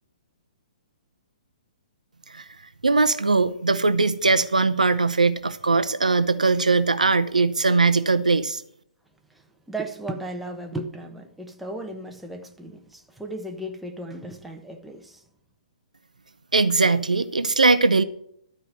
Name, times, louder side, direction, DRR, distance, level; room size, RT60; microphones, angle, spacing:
voice 1, 2.8-8.6 16.5-18.0, right 3 dB, 80° right, 0.7 m, -20 dB
voice 2, 9.3-15.2, right 1 dB, 5° right, 1.1 m, -35 dB
12.5 x 4.9 x 7.9 m
figure-of-eight pair, 120°, 4 cm